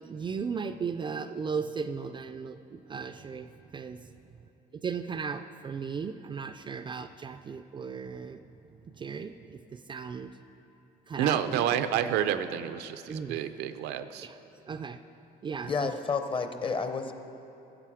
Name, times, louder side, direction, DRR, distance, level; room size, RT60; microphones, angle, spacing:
voice 1, 0.0-4.0 4.8-8.4 9.0-10.3 11.1-11.7 13.1-13.4 14.2-14.3 14.7-15.0 15.4-15.9, right 5 dB, 30° right, 9 dB, 0.4 m, -36 dB
voice 2, 11.2-14.3, right 10 dB, 80° right, 10 dB, 0.5 m, -29 dB
voice 3, 15.7-17.1, left 5 dB, 30° left, 8 dB, 0.7 m, -30 dB
14.0 x 7.6 x 4.9 m, 3.0 s
cardioid pair, 110°, 17 cm